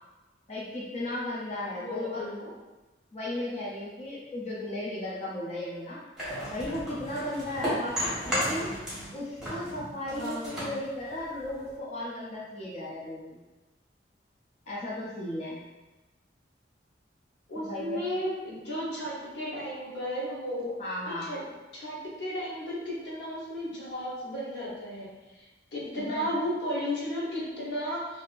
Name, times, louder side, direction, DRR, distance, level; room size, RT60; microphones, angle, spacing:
voice 1, 0.5-2.2 3.1-6.0 6.5-8.7 9.1-13.4 14.7-15.6 17.6-18.0 20.8-21.3 26.0-26.3, left 1 dB, 40° left, -7 dB, 0.4 m, -35 dB
voice 2, 1.8-2.4 10.1-10.7 17.5-20.7 21.1-21.4 21.7-28.2, equal, 75° left, -5 dB, 0.9 m, -34 dB
sound 1, 6.2-9.1 9.4-11.8, equal, 5° right, 1.2 m, -33 dB
3.2 x 2.6 x 2.5 m, 1.1 s
head